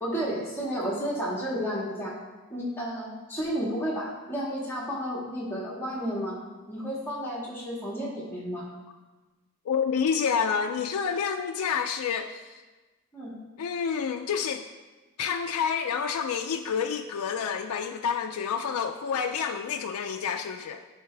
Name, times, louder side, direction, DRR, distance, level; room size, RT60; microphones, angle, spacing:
voice 1, 0.0-2.2 2.5-6.4 6.7-8.7 13.1-13.4, equal, 10° left, -6 dB, 1.6 m, -32 dB
voice 2, 9.7-12.5 13.6-14.6 15.2-20.8, left 6 dB, 85° left, 5 dB, 0.4 m, -28 dB
10.0 x 5.5 x 3.3 m, 1.2 s
head